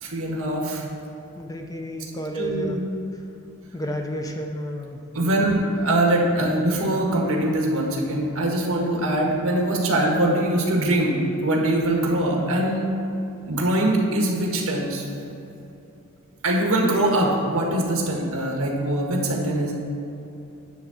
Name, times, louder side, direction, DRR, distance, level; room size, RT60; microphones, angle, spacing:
voice 1, 0.0-0.8 2.4-2.8 5.1-12.9 13.4-15.1 16.4-19.8, right 1 dB, 70° right, -1 dB, 1.5 m, -22 dB
voice 2, 1.3-2.8 3.7-5.5, equal, 15° left, 3 dB, 0.6 m, -32 dB
10.5 x 3.7 x 6.9 m, 2.8 s
head